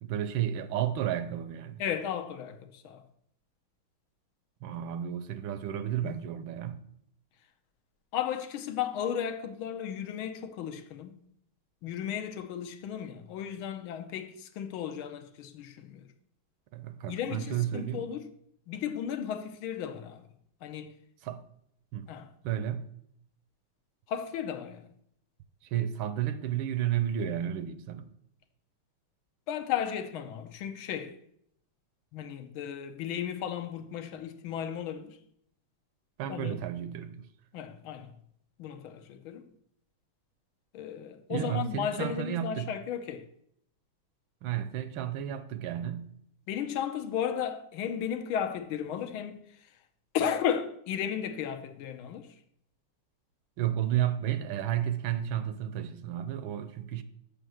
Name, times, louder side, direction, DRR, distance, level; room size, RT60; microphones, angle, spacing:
voice 1, 0.0-1.8 4.6-6.8 16.7-18.0 21.2-21.4 21.9-22.1 22.4-22.8 25.6-28.1 36.2-37.3 41.3-42.7 44.4-46.1 53.6-57.0, right 11 dB, 80° right, 1.4 m, -32 dB
voice 2, 1.8-3.0 4.7-4.8 6.0-6.2 8.1-11.2 11.8-16.1 17.1-18.3 18.7-20.2 20.6-20.9 22.1-22.3 24.1-24.9 29.5-31.2 32.1-35.2 36.3-36.7 37.5-38.1 38.6-39.5 40.7-43.3 46.5-49.8 50.1-52.4, left 9 dB, 85° left, 1.6 m, -35 dB
6.8 x 6.5 x 6.3 m
omnidirectional pair, 2.2 m